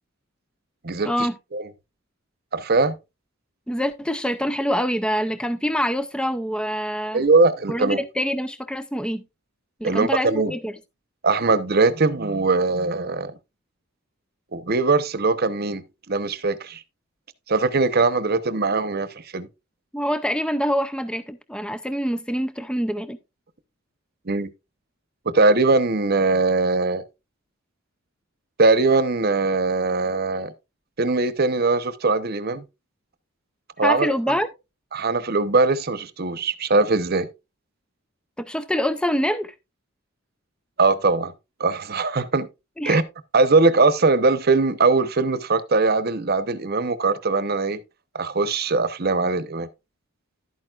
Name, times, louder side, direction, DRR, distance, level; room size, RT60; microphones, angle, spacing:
voice 1, 0.8-1.7 2.5-2.9 7.1-8.0 9.8-10.5 11.2-13.3 14.5-16.8 17.5-19.5 24.3-24.5 25.2-27.0 28.6-30.5 31.0-32.6 33.8-34.1 34.9-37.3 40.8-41.3 41.6-42.5 42.9-43.0 43.3-47.8 48.1-49.7, right 3 dB, 45° right, 0.9 m, -21 dB
voice 2, 3.7-7.2 7.7-9.2 9.8-10.7 19.9-23.2 33.8-34.5 38.4-39.5 42.8-43.0, equal, 5° left, 0.4 m, -25 dB
11.5 x 9.0 x 2.4 m
head